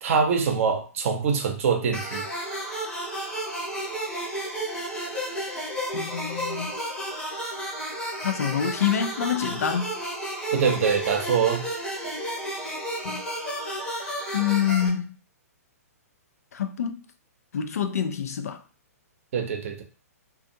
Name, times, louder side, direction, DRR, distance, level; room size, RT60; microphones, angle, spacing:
voice 1, 0.0-2.2 10.5-11.6 19.3-19.8, right 6 dB, 55° right, 0.7 m, -24 dB
sound 1, 1.9-14.9, right 1 dB, 10° left, 0.8 m, -32 dB
voice 2, 5.9-6.7 8.2-10.0 13.0-13.2 14.3-15.1 16.5-17.0 17.5-18.6, left 9 dB, 70° left, 0.4 m, -26 dB
2.5 x 2.3 x 2.6 m
hypercardioid pair, 125°, 9 cm